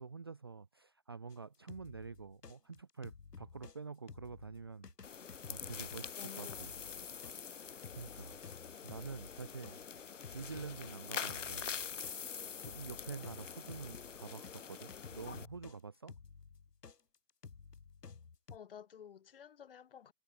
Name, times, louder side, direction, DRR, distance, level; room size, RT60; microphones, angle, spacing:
voice 1, 0.0-4.9 5.2-6.7 7.3-8.4 8.8-9.8 10.3-11.7 12.6-16.1, right 5 dB, 15° right, 0.9 m, -48 dB
sound 1, 1.3-3.8 4.1-14.5 14.9-18.6, left 5 dB, 85° left, 2.2 m, -54 dB
sound 2, 5.0-15.5, left 7 dB, 50° left, 0.8 m, -45 dB
voice 2, 6.2-7.1 18.5-20.1, left 8 dB, 35° left, 8.0 m, -53 dB
hypercardioid pair, 165°, 47 cm